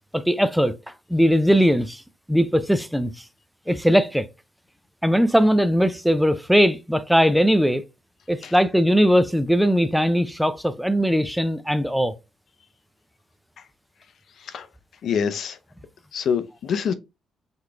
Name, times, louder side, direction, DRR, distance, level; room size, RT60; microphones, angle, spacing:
voice 1, 0.1-2.0 2.3-3.2 3.7-4.3 5.0-7.8 8.3-12.1, equal, ahead, 0.4 m, -20 dB
voice 2, 15.0-15.6 16.1-16.9, left 7 dB, 65° left, 0.6 m, -25 dB
4.0 x 3.1 x 3.3 m
cardioid pair, 90°, 0 cm